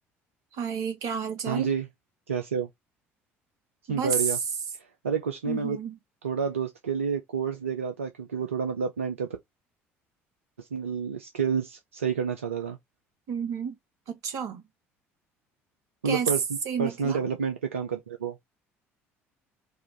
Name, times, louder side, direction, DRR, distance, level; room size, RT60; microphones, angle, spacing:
voice 1, 0.5-1.7 3.9-4.4 5.4-6.0 13.3-13.7 14.1-14.6 16.0-16.3 16.6-17.2, right 6 dB, 60° right, 1.5 m, -30 dB
voice 2, 1.5-1.9 2.3-2.7 3.9-4.4 4.8-5.8 6.2-9.4 10.6-12.8 16.0-16.4 16.8-18.4, right 6 dB, 80° right, 0.5 m, -29 dB
4.5 x 2.5 x 4.5 m
figure-of-eight pair, 55°, 7 cm